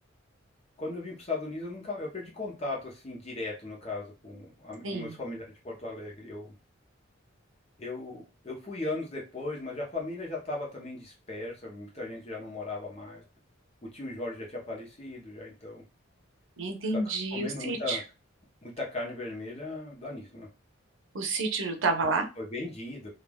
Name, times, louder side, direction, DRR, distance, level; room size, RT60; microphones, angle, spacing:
voice 1, 0.8-6.5 7.8-13.2 13.8-15.8 16.9-18.0 18.6-20.5 22.4-23.1, left 2 dB, 35° left, -2 dB, 0.7 m, -37 dB
voice 2, 4.8-5.2 16.6-18.0 21.1-22.3, right 3 dB, 90° right, 4 dB, 0.8 m, -29 dB
3.3 x 2.4 x 2.2 m, 0.30 s
head